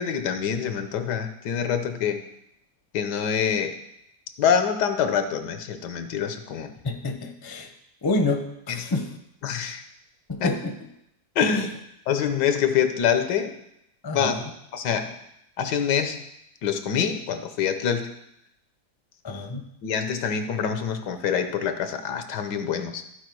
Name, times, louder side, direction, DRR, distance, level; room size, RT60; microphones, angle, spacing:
voice 1, 0.0-2.2 2.9-3.7 4.4-6.7 8.7-8.9 9.4-9.8 11.4-11.7 12.1-13.5 14.1-14.4 14.7-15.1 15.6-16.2 16.6-18.1 19.8-23.0, left 7 dB, 85° left, 8 dB, 1.4 m, -25 dB
voice 2, 6.8-7.7 8.0-9.1 10.3-10.7 11.5-11.8 14.0-14.4 19.2-19.6, left 2 dB, 20° left, 5 dB, 0.6 m, -28 dB
13.5 x 4.6 x 4.6 m, 0.80 s
omnidirectional pair, 1.8 m